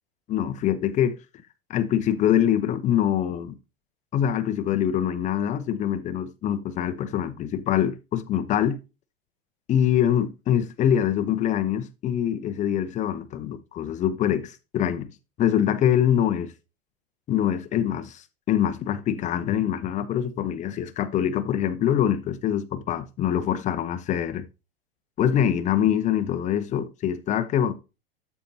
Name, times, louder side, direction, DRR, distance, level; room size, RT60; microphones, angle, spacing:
voice 1, 0.3-1.2 1.7-3.5 4.1-8.8 9.7-15.1 15.4-16.5 17.3-24.4 25.2-27.7, left 10 dB, 25° left, 0.8 m, -24 dB
13.0 x 4.6 x 2.7 m
figure-of-eight pair, 90°, 30 cm